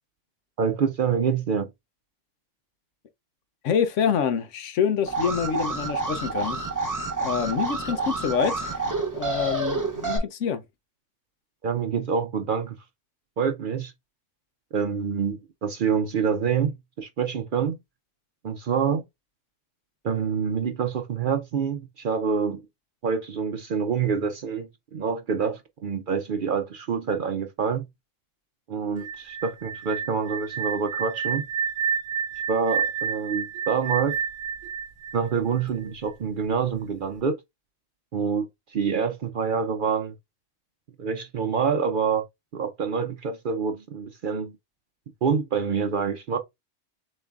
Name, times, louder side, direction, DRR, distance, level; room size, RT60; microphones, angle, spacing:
voice 1, 0.6-1.7 7.9-8.0 11.6-12.8 13.4-13.9 14.7-17.8 18.4-19.0 20.0-22.6 23.0-27.9 28.7-31.4 32.5-34.1 35.1-37.4 38.1-40.1 41.0-42.3 42.5-44.5 45.2-46.4, right 6 dB, 55° right, 0.6 m, -26 dB
voice 2, 3.6-6.6 7.2-10.6, left 7 dB, 75° left, 1.1 m, -26 dB
Alarm, 5.1-10.2, right 3 dB, 15° right, 1.0 m, -28 dB
sound 1, 29.0-35.9, right 7 dB, 85° right, 1.0 m, -30 dB
6.9 x 3.2 x 2.4 m
omnidirectional pair, 1.3 m